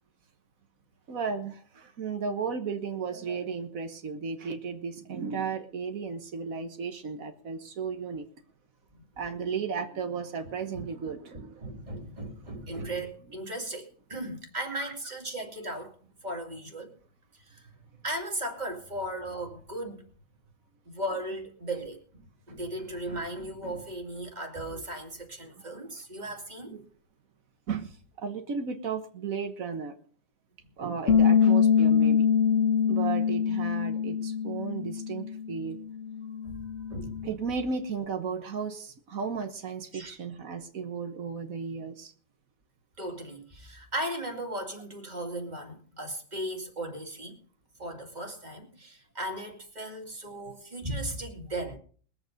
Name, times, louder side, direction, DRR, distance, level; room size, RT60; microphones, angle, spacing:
voice 1, 1.1-8.2 9.2-11.7 14.7-14.9 26.7-26.8 27.7-27.9 28.2-29.9 30.8-32.2 32.9-35.8 37.2-42.1, right 5 dB, 85° right, 1.7 m, -34 dB
voice 2, 11.3-16.9 17.4-17.7 18.0-20.0 20.9-22.2 22.5-26.8 36.3-37.3 39.9-40.1 43.0-47.4 47.8-51.8, right 1 dB, 30° right, 2.5 m, -37 dB
Bass guitar, 31.1-37.3, left 7 dB, 65° left, 1.3 m, -24 dB
21.5 x 7.9 x 5.2 m
omnidirectional pair, 1.4 m